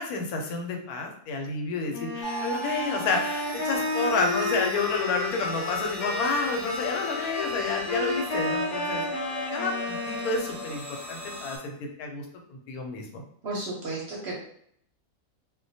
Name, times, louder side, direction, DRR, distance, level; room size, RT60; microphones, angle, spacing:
voice 1, 0.0-9.0 9.5-12.2 12.5-13.2, left 3 dB, 85° left, 2 dB, 1.1 m, -30 dB
Wind instrument woodwind instrument, 1.9-10.7, left 2 dB, 55° left, 0.9 m, -32 dB
sound 1, 2.2-11.6, equal, 35° left, 0.5 m, -37 dB
voice 2, 13.4-14.3, right 2 dB, 60° right, -3 dB, 0.7 m, -33 dB
2.3 x 2.2 x 2.6 m, 0.67 s
omnidirectional pair, 1.5 m